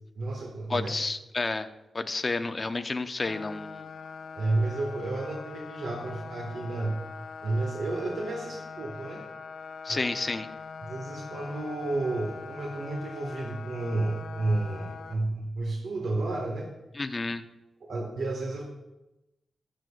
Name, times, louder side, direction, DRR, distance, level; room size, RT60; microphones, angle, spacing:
voice 1, 0.2-0.9 4.3-7.0 7.4-9.2 9.9-10.1 10.8-16.7 17.8-18.6, right 2 dB, 70° right, -1 dB, 1.7 m, -31 dB
voice 2, 0.7-1.7 1.9-3.9 9.8-10.5 16.9-17.4, left 3 dB, 30° left, 8 dB, 0.7 m, -30 dB
sound 1, 3.3-15.1, left 5 dB, 75° left, 0.8 m, -42 dB
22.0 x 7.7 x 2.5 m, 0.97 s
wide cardioid pair, 115°, 0 cm